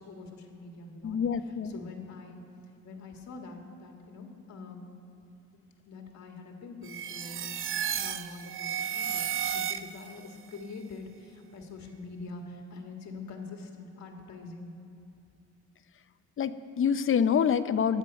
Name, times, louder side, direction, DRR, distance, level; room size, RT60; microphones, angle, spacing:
voice 1, 0.0-2.4 2.8-4.9 5.9-7.6 8.0-9.2 9.5-14.7, left 3 dB, 65° left, 3 dB, 1.8 m, -44 dB
voice 2, 1.0-1.7 16.4-18.0, left 7 dB, 45° left, 12 dB, 0.6 m, -26 dB
sound 1, 6.8-10.2, right 9 dB, 45° right, 0.5 m, -33 dB
20.0 x 7.5 x 5.3 m, 2.8 s
cardioid pair, 90°, 30 cm